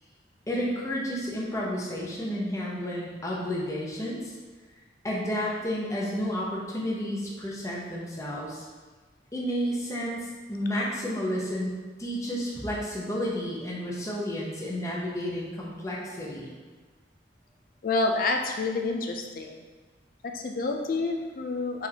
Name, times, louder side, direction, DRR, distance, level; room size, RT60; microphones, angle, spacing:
voice 1, 0.5-4.3 5.0-8.7 9.3-16.6, equal, 15° left, -4 dB, 0.7 m, -31 dB
voice 2, 17.8-19.6 20.3-21.9, left 3 dB, 50° left, 3 dB, 0.4 m, -28 dB
4.4 x 4.0 x 2.8 m, 1.4 s
head